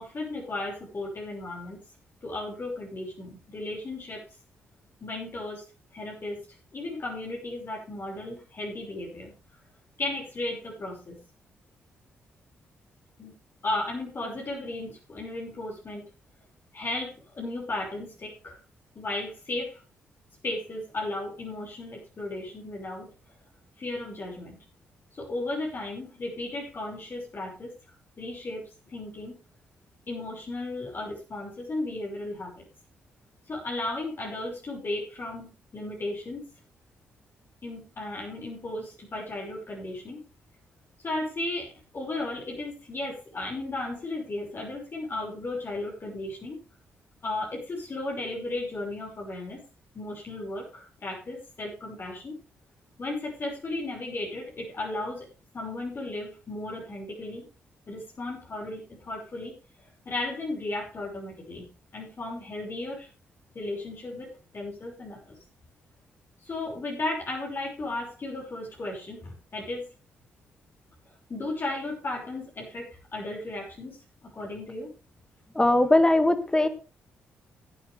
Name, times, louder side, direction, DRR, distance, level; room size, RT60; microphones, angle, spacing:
voice 1, 0.0-1.8 2.2-4.2 5.0-5.6 5.9-6.4 6.7-9.3 10.0-11.2 13.2-13.3 13.6-16.1 16.7-18.6 19.0-19.8 20.4-23.1 23.8-24.6 25.2-27.7 28.2-29.4 30.1-32.6 33.5-36.4 37.6-40.2 41.0-46.6 47.2-49.6 49.9-52.4 53.0-55.3 55.5-57.5 57.9-59.5 60.1-61.7 61.9-63.1 63.5-65.4 66.4-69.9 71.3-74.0 74.3-74.9, left 2 dB, 45° left, -2 dB, 5.9 m, -35 dB
voice 2, 75.6-76.7, left 1 dB, 15° left, 10 dB, 1.9 m, -20 dB
16.5 x 9.3 x 3.5 m, 0.32 s
hypercardioid pair, 45°, 5 cm